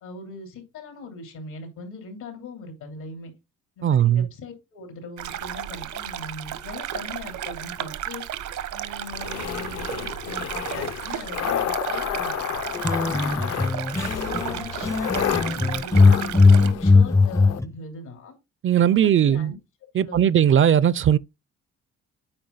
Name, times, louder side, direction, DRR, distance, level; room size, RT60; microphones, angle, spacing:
voice 1, 0.0-3.3 3.8-8.2 8.7-12.3 12.7-13.7 14.1-18.3 18.9-19.5 19.9-20.4, left 3 dB, 80° left, 3.1 m, -40 dB
voice 2, 3.8-4.3 18.6-19.5 20.0-21.2, right 9 dB, 45° right, 0.4 m, -18 dB
sound 1, 5.2-16.7, right 11 dB, 75° right, 0.9 m, -34 dB
sound 2, 9.1-17.6, left 9 dB, 55° left, 0.7 m, -31 dB
sound 3, 12.7-14.5 14.8-17.6, left 4 dB, 10° left, 0.5 m, -19 dB
8.7 x 4.7 x 3.9 m
cardioid pair, 90°, 30 cm